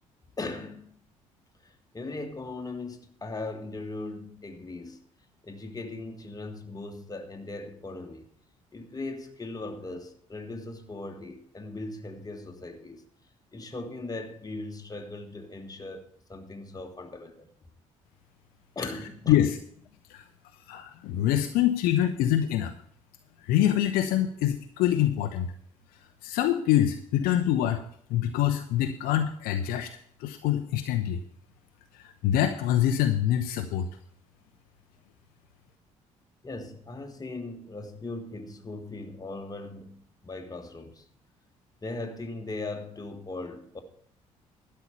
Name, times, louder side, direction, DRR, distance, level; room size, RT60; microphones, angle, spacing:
voice 1, 0.4-1.0 1.6-5.0 5.4-8.3 8.7-13.0 13.5-17.5 18.7-19.5 36.4-41.1 41.8-43.8, left 2 dB, 20° left, 1.7 m, -39 dB
voice 2, 20.7-22.8 23.4-25.5 26.2-27.8 28.1-29.9 30.2-31.2 31.9-33.9, left 11 dB, 60° left, 0.8 m, -25 dB
12.0 x 5.6 x 8.4 m
figure-of-eight pair, 50°, 17 cm